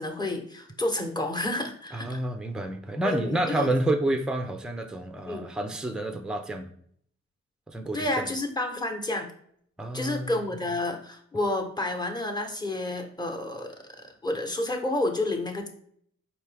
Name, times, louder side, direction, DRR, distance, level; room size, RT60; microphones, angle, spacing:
voice 1, 0.0-2.2 3.0-3.7 5.3-5.5 7.9-9.3 9.9-13.7 14.2-15.7, left 1 dB, 15° left, 3 dB, 1.1 m, -30 dB
voice 2, 1.9-6.7 7.7-8.2 9.8-10.3, right 1 dB, ahead, 6 dB, 0.6 m, -29 dB
4.4 x 3.0 x 3.4 m, 0.64 s
cardioid pair, 55°, 29 cm